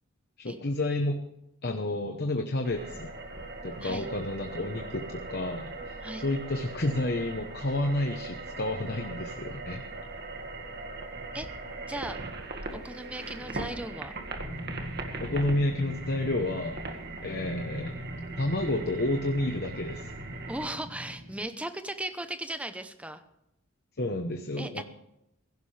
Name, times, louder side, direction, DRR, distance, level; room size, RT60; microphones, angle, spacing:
voice 1, 0.4-1.2 1.6-3.1 3.6-9.8 15.2-16.8 17.2-18.0 18.4-20.1 23.9-24.8, left 1 dB, 50° left, 5 dB, 1.0 m, -30 dB
sound 1, 2.6-20.7, right 3 dB, 50° right, 1.8 m, -40 dB
voice 2, 11.9-12.2 12.7-14.1 20.5-23.2 24.6-24.8, right 1 dB, 5° right, 9 dB, 0.8 m, -37 dB
sound 2, 14.3-21.4, equal, 70° right, 4.5 m, -41 dB
17.0 x 16.0 x 3.4 m, 0.82 s
head